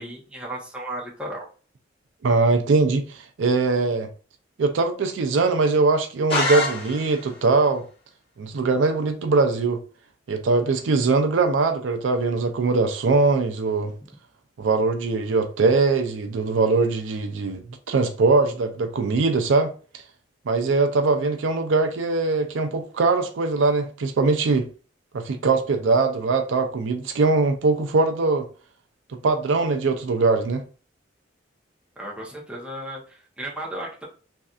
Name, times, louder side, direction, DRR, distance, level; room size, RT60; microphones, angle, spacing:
voice 1, 0.0-1.5 32.0-34.1, right 1 dB, 5° right, 0.8 m, -34 dB
voice 2, 2.2-4.1 4.6-7.8 8.4-9.8 10.3-13.9 14.6-19.7 20.5-24.7 25.1-28.5 29.1-30.6, right 3 dB, 80° right, 0.4 m, -21 dB
sound 1, 6.3-7.4, left 2 dB, 30° left, 1.3 m, -25 dB
3.2 x 2.6 x 2.4 m
head